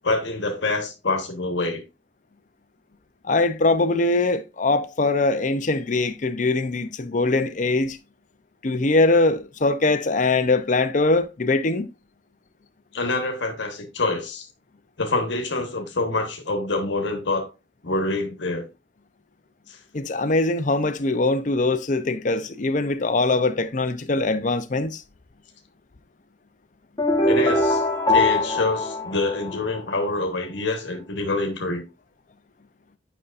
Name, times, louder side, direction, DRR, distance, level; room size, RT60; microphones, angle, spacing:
voice 1, 0.0-1.8 12.9-14.5 15.0-17.5 17.8-18.7 19.7-19.8 27.3-27.8 28.1-31.8, left 2 dB, 75° left, 1.3 m, -26 dB
voice 2, 3.2-8.0 8.6-11.9 19.9-25.0, left 2 dB, 40° left, 0.6 m, -22 dB
sound 1, 27.0-30.0, left 2 dB, 20° left, 1.2 m, -22 dB
9.2 x 5.5 x 2.5 m
head